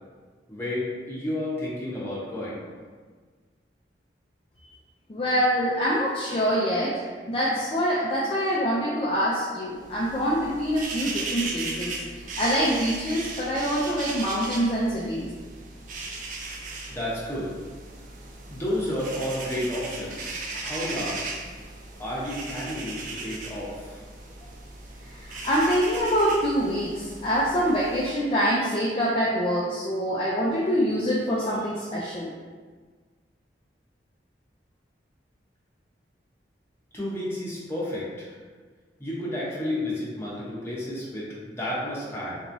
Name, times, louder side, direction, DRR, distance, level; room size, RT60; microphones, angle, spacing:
voice 1, 0.5-2.6 16.9-17.6 18.5-21.2 22.0-24.0 36.9-38.4 39.0-42.4, left 1 dB, 15° left, -8 dB, 0.9 m, -31 dB
voice 2, 5.1-12.0 12.4-15.3 25.0-32.3, equal, 30° left, -7 dB, 0.4 m, -25 dB
sound 1, 9.8-28.1, right 3 dB, 50° right, 0.4 m, -37 dB
3.4 x 3.0 x 2.7 m, 1.5 s
head